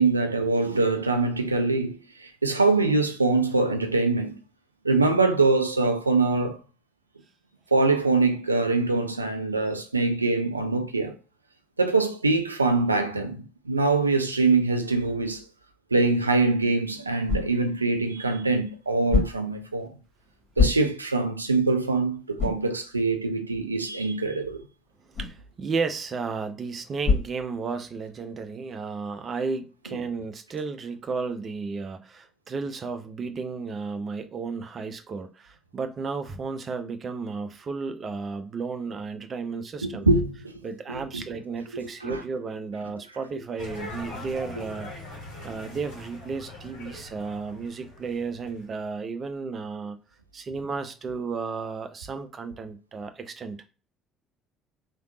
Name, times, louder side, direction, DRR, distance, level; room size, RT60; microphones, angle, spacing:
voice 1, 0.0-4.4 4.8-6.6 7.7-11.2 11.8-15.4 15.9-20.0 20.6-24.6 39.8-40.6 40.9-41.2 41.7-42.2, right 3 dB, 85° right, 0.4 m, -24 dB
sound 1, 16.4-28.1, left 4 dB, 45° left, 1.9 m, -32 dB
voice 2, 25.1-40.1 40.6-44.9 45.4-50.0 50.3-53.7, right 4 dB, 40° right, 0.6 m, -33 dB
sound 2, 43.6-48.8, left 1 dB, 65° left, 1.5 m, -41 dB
3.4 x 2.9 x 2.6 m
figure-of-eight pair, 55°, 0 cm